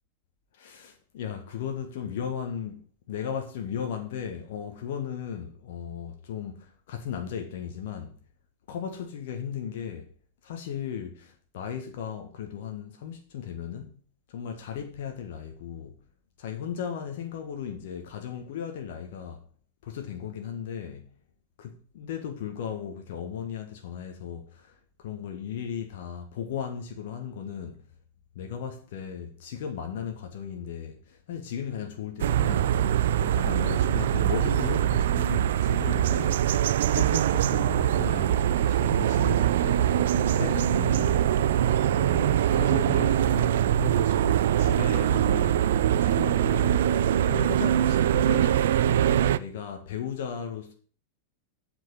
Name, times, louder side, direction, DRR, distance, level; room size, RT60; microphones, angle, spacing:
voice 1, 0.6-8.2 8.7-10.1 10.4-13.9 14.3-16.0 16.4-19.4 19.8-21.1 21.6-27.9 28.3-32.7 33.2-36.4 36.9-39.9 40.4-45.7 46.0-46.9 47.2-48.6 49.3-50.7, left 8 dB, 55° left, 1.5 m, -36 dB
sound 1, 32.2-49.4, right 10 dB, 60° right, 0.4 m, -23 dB
7.8 x 6.1 x 7.3 m
figure-of-eight pair, 90°, 0 cm